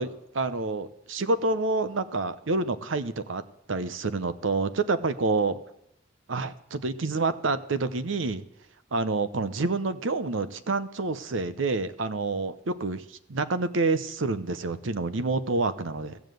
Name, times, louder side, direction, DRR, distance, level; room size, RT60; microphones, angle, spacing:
voice 1, 0.0-3.4 3.7-5.6 6.3-8.4 8.9-16.2, right 3 dB, 80° right, 13 dB, 0.7 m, -28 dB
16.0 x 7.2 x 7.8 m, 0.77 s
head